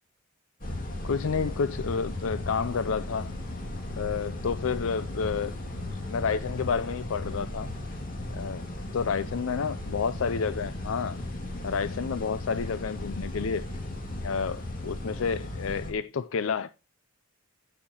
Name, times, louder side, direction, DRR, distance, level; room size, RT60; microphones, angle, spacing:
sound 1, 0.6-15.9, left 1 dB, 40° left, 2.3 m, -36 dB
voice 1, 1.0-3.3 4.0-5.6 6.1-7.7 8.3-8.6 8.9-11.2 11.6-13.7 14.2-16.7, left 5 dB, 80° left, 0.5 m, -30 dB
15.0 x 5.7 x 2.9 m
head